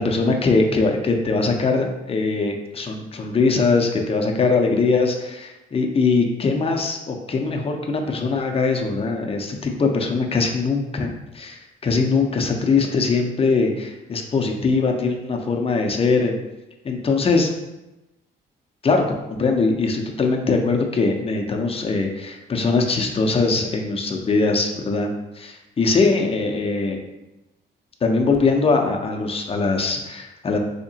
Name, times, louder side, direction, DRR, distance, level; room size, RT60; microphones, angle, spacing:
voice 1, 0.0-16.4 16.8-17.5 18.8-19.0 19.3-27.0 28.0-30.6, left 4 dB, 30° left, 2 dB, 0.5 m, -21 dB
3.4 x 2.8 x 2.7 m, 1.0 s
cardioid pair, 90°, 20 cm